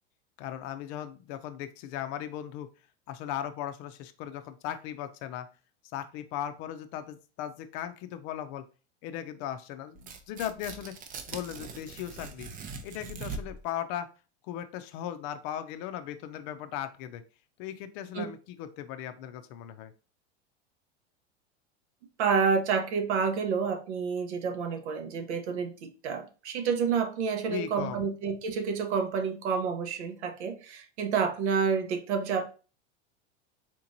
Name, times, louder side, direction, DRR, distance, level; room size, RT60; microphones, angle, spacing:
voice 1, 0.4-2.7 3.1-5.5 5.9-8.6 9.0-10.9 11.3-12.5 12.8-14.1 14.4-17.2 17.6-19.9 27.5-28.1, left 11 dB, 50° left, 10 dB, 0.5 m, -37 dB
Tearing, 10.0-13.7, right 4 dB, 25° right, 0.5 m, -41 dB
voice 2, 22.2-32.4, right 6 dB, 80° right, 7 dB, 0.8 m, -29 dB
3.7 x 2.9 x 2.6 m, 0.35 s
hypercardioid pair, 110°, 34 cm